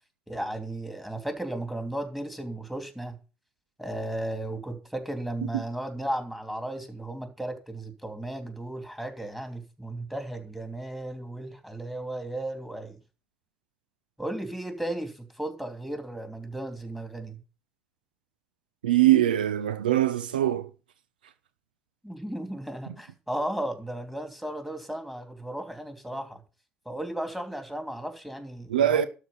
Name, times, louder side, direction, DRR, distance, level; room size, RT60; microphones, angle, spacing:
voice 1, 0.3-3.2 3.8-13.0 14.2-17.4 22.0-26.4 26.8-29.1, right 1 dB, 5° right, 2.9 m, -35 dB
voice 2, 18.8-20.7 28.7-29.0, right 12 dB, 85° right, 0.5 m, -22 dB
12.5 x 4.7 x 7.8 m
hypercardioid pair, 55°, 5 cm